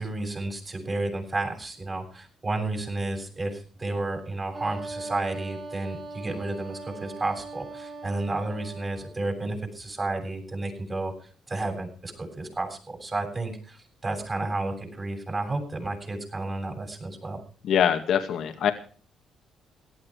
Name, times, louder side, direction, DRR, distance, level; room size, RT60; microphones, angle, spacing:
voice 1, 0.0-11.1 11.5-17.4, right 2 dB, 30° right, 3 dB, 7.8 m, -32 dB
Wind instrument woodwind instrument, 4.5-9.2, right 2 dB, 45° right, 4.4 m, -40 dB
voice 2, 17.6-18.7, left 9 dB, 70° left, 5 dB, 2.1 m, -23 dB
17.5 x 13.0 x 4.9 m, 0.41 s
cardioid pair, 90°, 0 cm